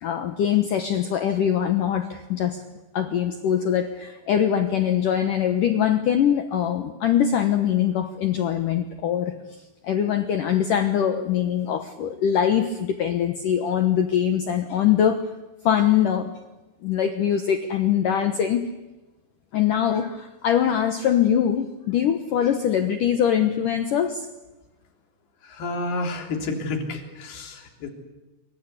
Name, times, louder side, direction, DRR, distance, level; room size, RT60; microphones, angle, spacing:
voice 1, 0.0-2.6 2.9-9.3 9.8-15.2 15.6-16.3 16.8-18.7 19.5-24.3, left 9 dB, 80° left, 8 dB, 1.9 m, -22 dB
voice 2, 25.4-27.9, left 2 dB, 55° left, 3 dB, 5.2 m, -30 dB
26.5 x 24.5 x 8.2 m, 1.1 s
omnidirectional pair, 5.6 m